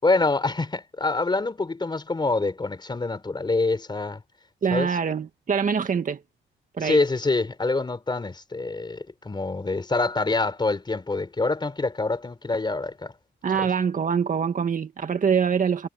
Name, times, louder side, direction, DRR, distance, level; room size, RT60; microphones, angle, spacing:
voice 1, 0.0-4.2 4.7-4.9 6.8-13.1 13.6-13.7, left 3 dB, 20° left, 3.9 m, -26 dB
voice 2, 4.6-6.2 6.8-7.0 13.4-15.9, right 6 dB, 40° right, 1.8 m, -24 dB
cardioid pair, 90°, 20 cm